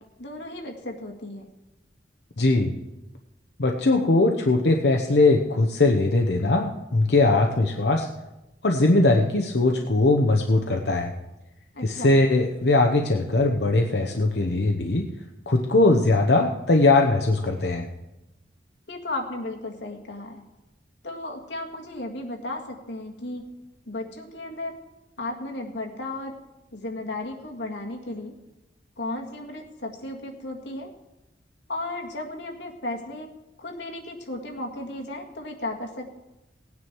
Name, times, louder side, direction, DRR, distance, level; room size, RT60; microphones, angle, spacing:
voice 1, 0.2-1.5 11.7-12.2 18.9-20.4 21.0-23.5 23.9-24.7 25.2-26.4 26.7-28.3 29.0-30.9 31.7-33.3 33.6-36.0, left 2 dB, 90° left, 2 dB, 1.9 m, -34 dB
voice 2, 2.4-2.7 3.6-8.1 8.6-11.1 11.8-15.1 15.5-17.9, left 2 dB, 65° left, 3 dB, 0.9 m, -20 dB
17.5 x 9.5 x 4.6 m, 1.0 s
head